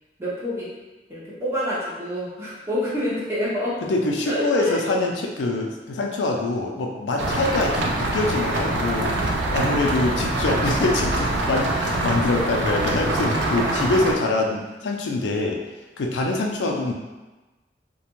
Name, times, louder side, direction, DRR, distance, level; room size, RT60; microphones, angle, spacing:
voice 1, 0.2-0.7 1.1-3.8 4.2-4.8, left 1 dB, 15° right, -9 dB, 0.7 m, -27 dB
voice 2, 3.8-15.6 16.0-16.9, left 2 dB, 90° left, 1 dB, 0.4 m, -24 dB
sound 1, 7.2-14.1, right 2 dB, 85° right, 0.4 m, -24 dB
2.4 x 2.2 x 2.9 m, 1.1 s
head